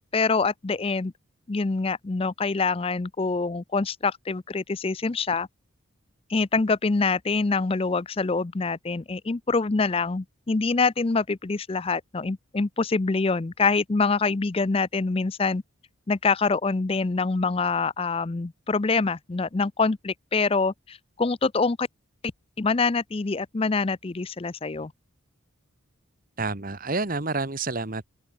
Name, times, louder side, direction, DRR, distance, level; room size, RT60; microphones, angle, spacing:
voice 1, 0.1-1.1 1.5-5.5 6.3-15.6 16.1-21.9 22.6-24.9, left 4 dB, 25° left, 0.4 m, -25 dB
voice 2, 26.4-28.1, right 3 dB, 40° right, 1.6 m, -29 dB
open air
head